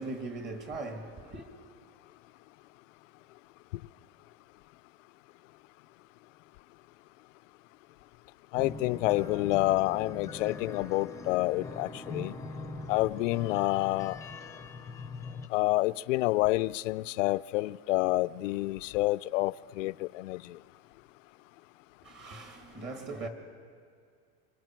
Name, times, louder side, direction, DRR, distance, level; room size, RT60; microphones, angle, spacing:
voice 1, 0.0-1.5 22.0-23.3, right 3 dB, 30° right, 2.1 m, -39 dB
voice 2, 8.5-12.3 12.9-14.2 15.5-20.6, left 19 dB, 80° left, 0.5 m, -28 dB
sound 1, 8.6-15.5, left 3 dB, 10° left, 0.7 m, -42 dB
28.0 x 25.5 x 4.6 m
supercardioid pair, 150°, 38 cm